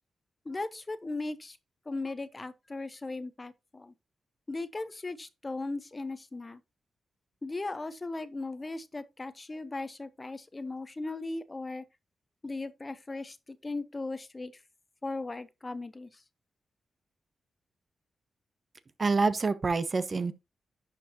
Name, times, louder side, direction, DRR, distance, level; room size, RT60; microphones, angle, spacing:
voice 1, 0.4-1.6 1.9-3.9 4.5-6.6 7.4-11.8 12.4-14.6 15.0-16.2, left 2 dB, 30° left, 0.8 m, -37 dB
voice 2, 19.0-20.3, right 4 dB, 45° right, 0.7 m, -27 dB
10.5 x 4.5 x 2.9 m
cardioid pair, 60°, 0 cm